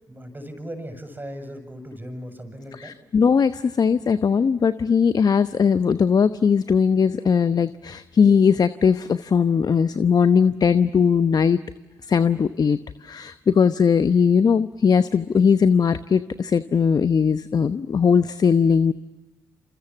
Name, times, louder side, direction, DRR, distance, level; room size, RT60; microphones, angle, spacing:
voice 1, 0.1-2.9, equal, 20° right, 8 dB, 7.1 m, -37 dB
voice 2, 2.7-11.6 12.1-12.8 13.0-18.9, left 6 dB, 45° left, 13 dB, 0.9 m, -19 dB
28.5 x 28.0 x 7.2 m, 1.2 s
hypercardioid pair, 40°, 9 cm